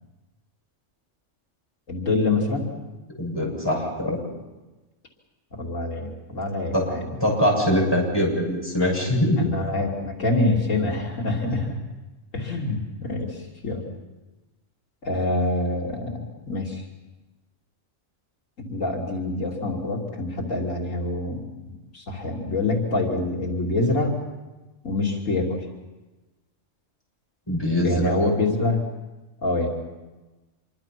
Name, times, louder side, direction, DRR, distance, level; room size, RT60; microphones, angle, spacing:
voice 1, 1.9-2.7 5.5-7.0 9.4-11.8 12.3-13.8 15.0-16.2 16.5-16.8 18.6-21.4 21.9-24.2 24.8-25.6 27.8-28.8 29.4-29.7, left 2 dB, 85° left, -1 dB, 3.4 m, -25 dB
voice 2, 3.2-4.2 6.7-6.8 7.2-9.4 11.5-11.7 27.5-28.3, equal, 20° left, -2 dB, 7.1 m, -23 dB
26.5 x 23.5 x 6.0 m, 1.1 s
omnidirectional pair, 1.3 m